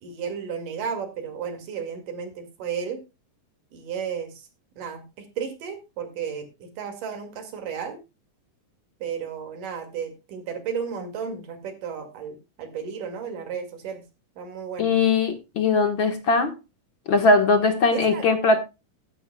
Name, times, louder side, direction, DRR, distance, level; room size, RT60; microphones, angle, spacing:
voice 1, 0.0-3.0 3.7-4.5 4.8-8.0 9.0-14.0 14.4-14.9 17.9-18.3, right 7 dB, 80° right, 6 dB, 3.8 m, -33 dB
voice 2, 14.8-16.5 17.1-18.6, left 3 dB, 50° left, 7 dB, 1.6 m, -20 dB
15.5 x 11.0 x 2.2 m, 0.26 s
omnidirectional pair, 3.7 m